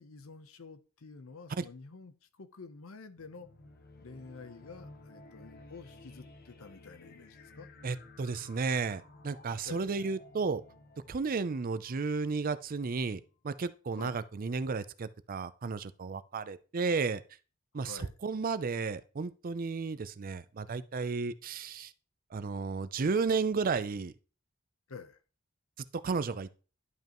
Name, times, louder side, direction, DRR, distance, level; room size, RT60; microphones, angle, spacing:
voice 1, 0.0-3.5 4.0-7.7 9.6-9.9 14.0-14.2 17.8-18.1 24.9-25.2, left 4 dB, 75° left, 0.8 m, -49 dB
sound 1, 3.2-13.4, left 2 dB, 45° left, 0.9 m, -55 dB
voice 2, 7.8-10.6 11.1-17.2 17.7-21.9 22.3-24.1 25.9-26.5, right 4 dB, 45° right, 0.5 m, -33 dB
11.0 x 5.3 x 3.0 m
head